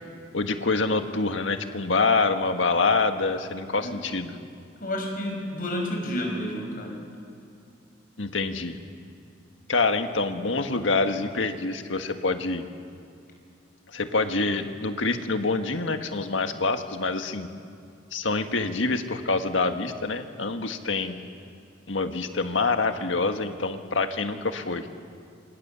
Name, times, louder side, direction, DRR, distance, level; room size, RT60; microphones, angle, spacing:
voice 1, 0.3-4.3 8.2-8.7 9.7-12.6 13.9-17.5 18.1-21.2 21.9-24.9, left 3 dB, 85° left, 6 dB, 1.6 m, -26 dB
voice 2, 4.8-7.0, left 1 dB, 45° left, 1 dB, 6.0 m, -30 dB
29.0 x 26.0 x 7.0 m, 2.5 s
head